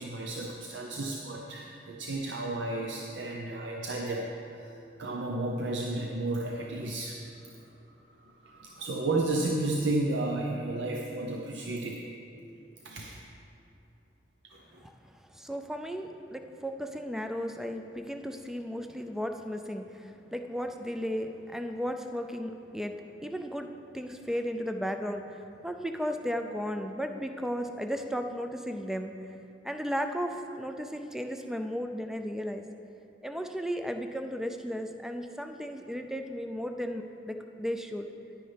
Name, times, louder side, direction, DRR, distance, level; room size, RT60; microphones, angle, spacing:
voice 1, 0.0-4.7 5.0-7.2 7.5-7.7 8.2-12.0 12.8-13.2 14.4-14.8, right 2 dB, 90° right, -1 dB, 0.7 m, -33 dB
voice 2, 15.3-23.7 23.9-29.2 29.6-32.6 33.2-38.1, equal, 5° right, 6 dB, 0.4 m, -35 dB
10.5 x 9.5 x 3.4 m, 2.7 s
head